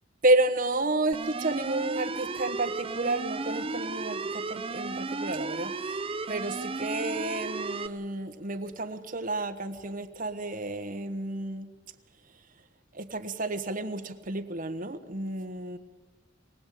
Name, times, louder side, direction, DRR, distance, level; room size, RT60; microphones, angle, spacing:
voice 1, 0.2-6.0 6.3-11.7 12.9-15.8, right 2 dB, 45° right, 7 dB, 1.4 m, -30 dB
sound 1, 1.1-7.9, right 3 dB, 30° right, 0.7 m, -34 dB
23.0 x 19.0 x 8.6 m, 1.3 s
head